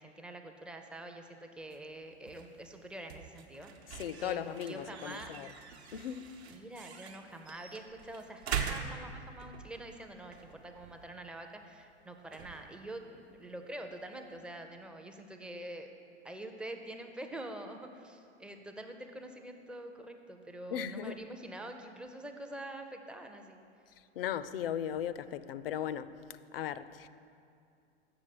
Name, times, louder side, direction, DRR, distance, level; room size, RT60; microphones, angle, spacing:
voice 1, 0.0-5.3 6.5-15.9 16.2-23.6, right 1 dB, 5° right, 0.4 m, -46 dB
sound 1, 1.6-14.4, right 7 dB, 70° right, 0.9 m, -44 dB
voice 2, 3.9-5.5 5.9-6.4 20.7-21.2 24.1-27.1, left 9 dB, 60° left, 0.5 m, -37 dB
7.2 x 6.8 x 7.6 m
figure-of-eight pair, 95°, 34 cm